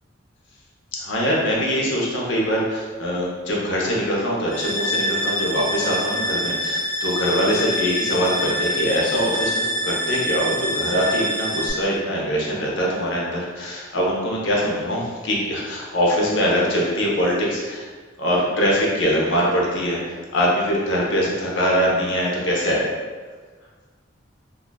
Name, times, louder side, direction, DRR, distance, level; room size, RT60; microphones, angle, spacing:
voice 1, 1.0-17.9 18.2-22.8, equal, 65° left, -3 dB, 0.7 m, -23 dB
sound 1, 4.5-11.7, equal, 45° left, 1.0 m, -25 dB
3.6 x 2.4 x 2.2 m, 1.5 s
head